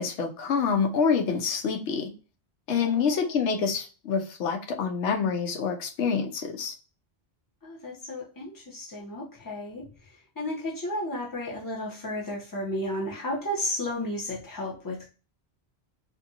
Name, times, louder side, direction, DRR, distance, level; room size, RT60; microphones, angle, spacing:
voice 1, 0.0-2.1 2.7-6.7, left 6 dB, 90° left, 1.0 m, -27 dB
voice 2, 2.8-3.2 7.6-9.9 10.4-15.1, left 1 dB, 20° left, 0.9 m, -33 dB
2.6 x 2.5 x 2.7 m
omnidirectional pair, 1.1 m